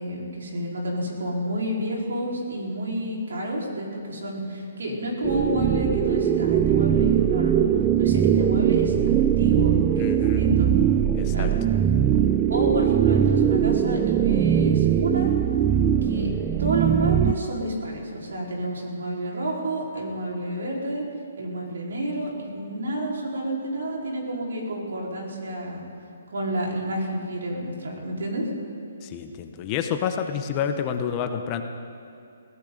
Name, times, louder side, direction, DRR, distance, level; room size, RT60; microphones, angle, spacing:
voice 1, 0.0-7.7 8.0-10.7 11.3-11.6 12.5-15.3 16.0-16.3 16.6-21.0 21.4-25.8 26.3-28.5, right 1 dB, 80° right, -2 dB, 4.4 m, -29 dB
sound 1, 5.2-17.3, right 9 dB, 15° right, 0.4 m, -21 dB
voice 2, 10.0-10.4 11.2-11.5 29.0-31.6, left 8 dB, 20° left, 6 dB, 0.8 m, -29 dB
22.5 x 16.5 x 3.9 m, 2.6 s
hypercardioid pair, 170°, 0 cm